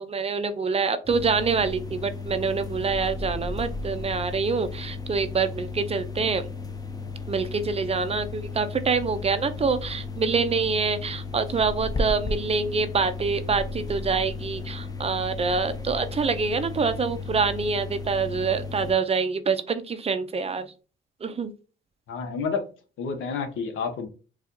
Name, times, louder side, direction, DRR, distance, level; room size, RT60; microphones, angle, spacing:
voice 1, 0.0-6.5 7.3-20.7 21.2-21.5, right 5 dB, 30° right, 0.5 m, -26 dB
sound 1, 1.0-18.9, left 3 dB, 20° left, 0.6 m, -34 dB
voice 2, 22.1-22.6 23.0-24.1, left 5 dB, 80° left, 0.9 m, -29 dB
4.2 x 2.4 x 2.6 m
cardioid pair, 90°, 20 cm